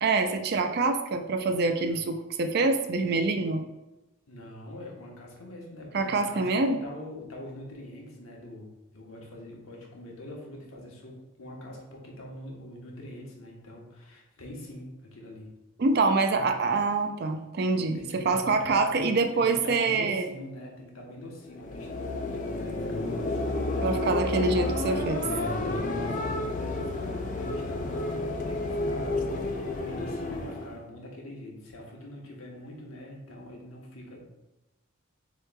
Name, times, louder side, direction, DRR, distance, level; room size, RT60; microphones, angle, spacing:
voice 1, 0.0-3.6 5.9-6.8 15.8-20.3 23.8-25.2, right 3 dB, 50° right, 7 dB, 0.4 m, -25 dB
voice 2, 4.3-15.5 16.3-16.5 17.9-24.8 25.2-34.2, left 1 dB, 80° left, -1 dB, 1.1 m, -43 dB
sound 1, 21.5-30.8, left 2 dB, 35° left, 0.3 m, -31 dB
6.4 x 3.0 x 2.3 m, 1.0 s
head